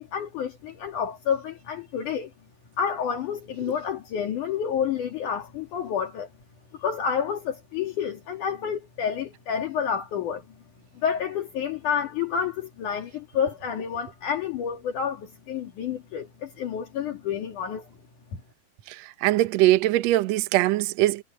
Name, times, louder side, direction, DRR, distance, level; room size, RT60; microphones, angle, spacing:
voice 1, 0.0-2.3 2.8-6.3 6.8-10.5 11.0-17.9, left 7 dB, 65° left, 3.5 m, -29 dB
voice 2, 19.2-21.2, right 16 dB, 75° right, 1.6 m, -21 dB
omnidirectional pair, 4.0 m